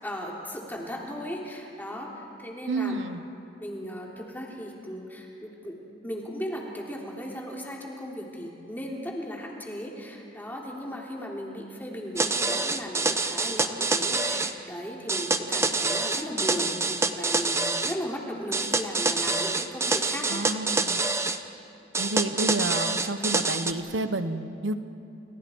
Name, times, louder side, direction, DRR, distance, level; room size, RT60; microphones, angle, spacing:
voice 1, 0.0-3.0 3.6-5.8 6.0-16.8 17.1-20.4, equal, 10° left, -2 dB, 3.4 m, -36 dB
voice 2, 2.7-3.2 20.3-21.1 22.0-24.7, right 2 dB, 85° right, 10 dB, 1.2 m, -30 dB
sound 1, 12.2-14.5 15.1-18.0 18.5-21.4 21.9-23.7, right 3 dB, 15° right, 0.9 m, -26 dB
30.0 x 28.0 x 4.7 m, 2.8 s
head